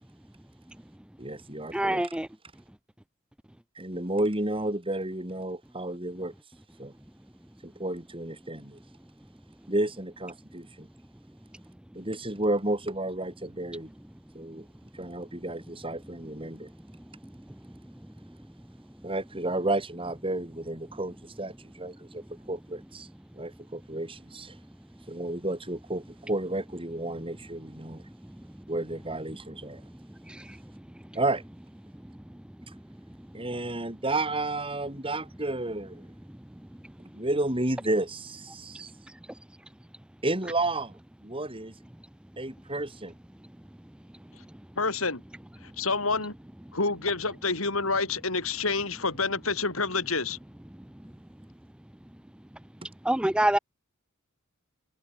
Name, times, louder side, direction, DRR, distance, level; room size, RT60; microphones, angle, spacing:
voice 1, 1.2-2.1 3.8-6.3 6.8-6.9 7.6-8.8 9.7-10.9 11.9-13.9 14.3-14.7 14.9-16.7 19.0-23.1 23.4-24.5 25.1-28.0 28.7-29.8 31.1-31.4 33.3-36.0 37.1-38.9 40.2-40.9 41.2-41.7 42.4-43.1, right 2 dB, 25° right, 4.4 m, -31 dB
voice 2, 1.7-2.3 30.3-30.6 53.0-53.6, right 1 dB, 5° right, 0.5 m, -25 dB
voice 3, 44.8-45.2 45.6-46.3 46.7-50.4, left 4 dB, 90° left, 6.2 m, -28 dB
head